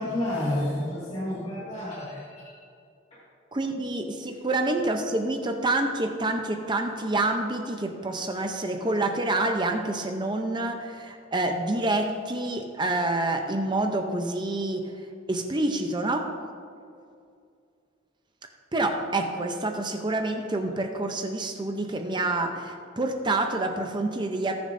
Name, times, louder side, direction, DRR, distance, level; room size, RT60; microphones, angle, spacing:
voice 1, 0.0-2.5 3.1-3.2, left 1 dB, 35° left, -9 dB, 1.9 m, -30 dB
voice 2, 3.5-14.9 15.3-16.3 18.7-24.5, right 2 dB, 25° right, 4 dB, 0.6 m, -27 dB
19.5 x 6.8 x 2.6 m, 2.4 s
head